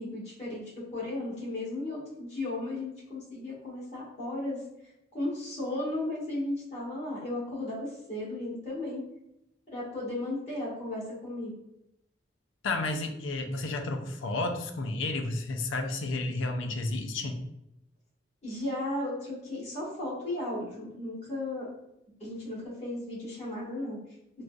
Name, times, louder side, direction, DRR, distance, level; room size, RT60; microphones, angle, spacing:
voice 1, 0.0-4.6 5.1-9.0 9.7-11.5 18.4-21.7 22.2-24.0, left 1 dB, 35° left, -7 dB, 1.4 m, -35 dB
voice 2, 12.6-17.4, left 2 dB, 80° left, 5 dB, 0.4 m, -31 dB
3.7 x 2.4 x 2.3 m, 0.85 s
head